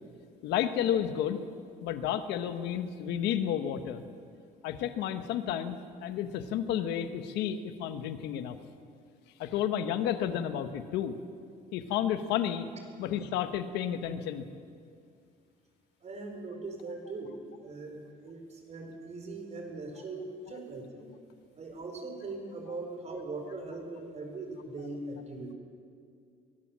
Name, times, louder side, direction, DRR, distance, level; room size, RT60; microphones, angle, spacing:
voice 1, 0.4-1.4 1.8-4.0 4.6-8.5 9.4-11.2 11.7-12.7 13.0-14.4, left 10 dB, 90° left, 9 dB, 1.2 m, -31 dB
voice 2, 16.0-21.1 21.6-25.5, right 3 dB, 40° right, 4 dB, 4.5 m, -40 dB
23.0 x 16.0 x 7.5 m, 2.3 s
cardioid pair, 110°, 17 cm